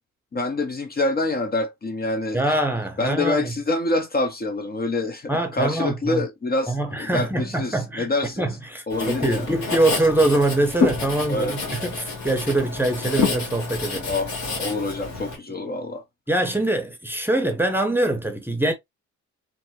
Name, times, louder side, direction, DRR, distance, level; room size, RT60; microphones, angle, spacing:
voice 1, 0.3-2.6 3.0-8.5 8.9-9.5 11.3-11.6 14.1-16.0, left 2 dB, 30° left, 0.7 m, -26 dB
voice 2, 2.3-3.5 5.3-6.2 6.7-14.1 16.3-18.7, right 1 dB, 5° right, 0.8 m, -23 dB
Writing, 8.9-15.4, left 4 dB, 65° left, 1.6 m, -28 dB
3.3 x 2.6 x 2.9 m
cardioid pair, 90°, 30 cm